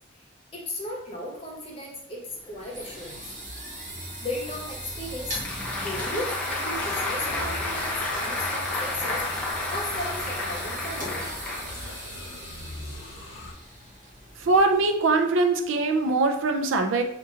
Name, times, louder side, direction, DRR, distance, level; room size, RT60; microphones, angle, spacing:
voice 1, 0.5-3.3 4.2-5.4 5.7-11.4, left 1 dB, 30° left, -3 dB, 1.0 m, -36 dB
sound 1, 2.3-15.1, right 1 dB, 40° right, 1.0 m, -39 dB
Applause, 5.1-12.3, left 2 dB, 5° left, 0.6 m, -31 dB
sound 2, 6.7-13.5, left 2 dB, 75° left, 0.7 m, -42 dB
voice 2, 14.4-17.0, right 3 dB, 75° right, 6 dB, 0.5 m, -22 dB
5.1 x 2.8 x 2.4 m, 0.74 s
head